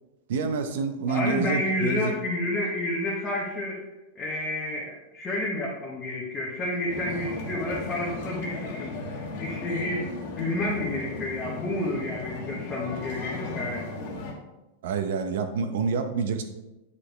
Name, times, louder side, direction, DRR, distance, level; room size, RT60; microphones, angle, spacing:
voice 1, 0.3-2.1 14.8-16.4, right 5 dB, 70° right, 7 dB, 0.9 m, -27 dB
voice 2, 1.1-3.8 4.1-10.1 10.4-13.9, left 1 dB, 20° left, -4 dB, 1.0 m, -30 dB
sound 1, 6.9-14.3, left 3 dB, 55° left, 1.3 m, -36 dB
8.3 x 4.9 x 3.3 m, 1.0 s
supercardioid pair, 165°, 0 cm